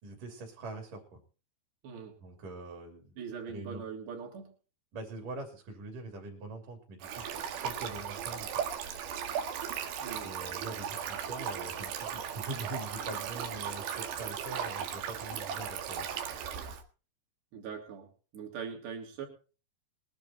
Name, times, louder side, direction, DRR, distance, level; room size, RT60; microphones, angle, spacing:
voice 1, 0.0-1.2 2.2-3.2 3.5-3.8 4.9-8.6 10.2-16.2, right 2 dB, 50° right, 1 dB, 4.4 m, -43 dB
voice 2, 1.8-2.2 3.2-4.5 10.0-10.3 17.5-19.3, right 6 dB, 70° right, 1 dB, 5.1 m, -42 dB
Stream, 7.0-16.8, right 8 dB, 90° right, 4.0 m, -37 dB
21.5 x 10.5 x 4.3 m, 0.36 s
omnidirectional pair, 4.9 m